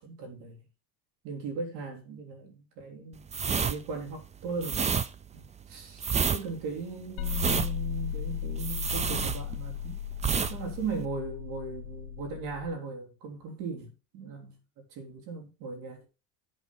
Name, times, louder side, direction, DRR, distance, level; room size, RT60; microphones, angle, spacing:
voice 1, 0.0-0.6 1.2-5.0 5.3-10.0 10.5-14.6 14.9-16.1, right 4 dB, 80° right, 3.3 m, -38 dB
sound 1, 3.3-9.8 10.2-10.6 10.8-11.0, right 6 dB, 15° right, 0.5 m, -29 dB
sound 2, 7.2-12.7, left 10 dB, 65° left, 1.3 m, -36 dB
8.3 x 4.1 x 5.8 m
cardioid pair, 120°, 40 cm